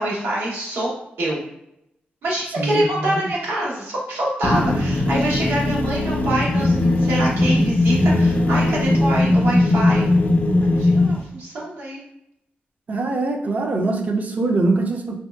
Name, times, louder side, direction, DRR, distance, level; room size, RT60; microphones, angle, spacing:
voice 1, 0.0-1.4 2.2-10.1 10.6-12.0, right 1 dB, 90° right, -4 dB, 1.0 m, -25 dB
voice 2, 2.6-3.3 12.9-15.2, right 2 dB, 45° right, 4 dB, 0.4 m, -23 dB
sound 1, 4.4-11.2, left 2 dB, 45° left, 0.4 m, -19 dB
3.0 x 2.6 x 2.2 m, 0.80 s
cardioid pair, 95°, 4 cm